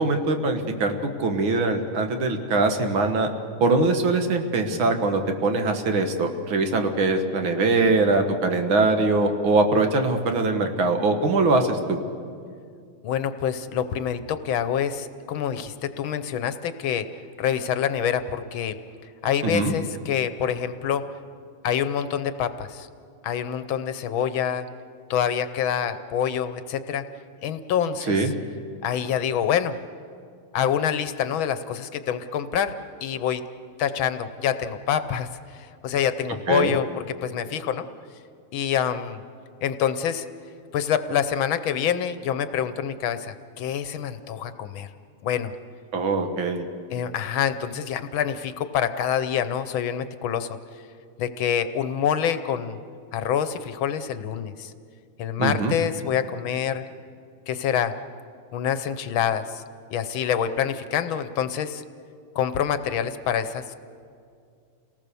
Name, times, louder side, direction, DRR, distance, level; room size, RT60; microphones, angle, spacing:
voice 1, 0.0-3.3 3.6-12.0 19.4-19.7 28.1-28.3 36.5-36.7 45.9-46.7 55.4-55.7, right 3 dB, 65° right, 5 dB, 2.2 m, -22 dB
voice 2, 13.0-18.8 19.2-21.1 21.6-22.9 23.2-24.7 25.1-27.0 27.4-28.3 28.8-29.7 30.5-32.7 33.0-33.4 33.8-37.9 38.5-39.2 39.6-40.3 40.7-44.9 45.2-45.5 46.9-50.5 51.2-52.8 53.1-54.7 55.2-56.8 57.5-57.9 58.5-59.6 59.9-61.8 62.3-63.8, left 8 dB, 70° left, 11 dB, 1.5 m, -26 dB
28.5 x 18.5 x 6.9 m, 2.3 s
omnidirectional pair, 2.4 m